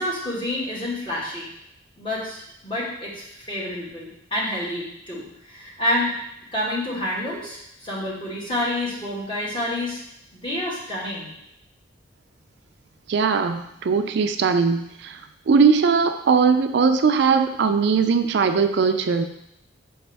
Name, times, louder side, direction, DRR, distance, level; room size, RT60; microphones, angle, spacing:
voice 1, 0.0-1.5 2.0-6.1 6.5-10.0 10.3-11.3, left 1 dB, 25° left, -6 dB, 1.8 m, -28 dB
voice 2, 13.1-15.2 15.5-19.2, right 5 dB, 60° right, 8 dB, 0.4 m, -19 dB
6.2 x 4.7 x 3.4 m, 0.78 s
head